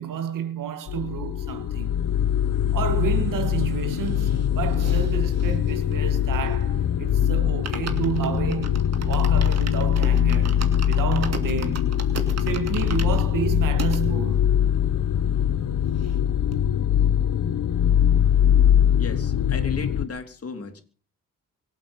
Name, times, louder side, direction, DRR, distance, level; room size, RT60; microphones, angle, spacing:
voice 1, 0.0-2.0 2.7-11.9 12.4-14.5, right 8 dB, 75° right, 1.9 m, -31 dB
sound 1, 0.9-20.1, left 9 dB, 70° left, 1.1 m, -22 dB
sound 2, 4.0-6.8 7.1-7.2 7.5-14.0 14.6-14.7 14.9-15.0 15.3-16.2 16.5-16.6, right 5 dB, 50° right, 2.6 m, -38 dB
voice 2, 19.0-20.8, left 5 dB, 45° left, 3.4 m, -34 dB
25.0 x 8.5 x 5.5 m
cardioid pair, 85°, 33 cm